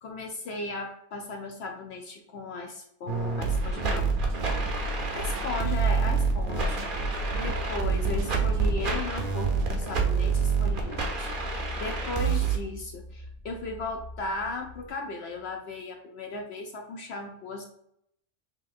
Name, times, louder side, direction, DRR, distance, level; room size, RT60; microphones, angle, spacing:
voice 1, 0.0-4.1 5.1-17.6, left 3 dB, 65° left, 3 dB, 0.8 m, -36 dB
sound 1, 3.1-12.6, right 4 dB, 50° right, 0.9 m, -27 dB
sound 2, 4.1-9.8, right 3 dB, 75° right, 0.9 m, -35 dB
sound 3, 7.4-14.9, left 1 dB, 5° right, 0.8 m, -42 dB
6.2 x 2.6 x 2.4 m, 0.74 s
omnidirectional pair, 1.3 m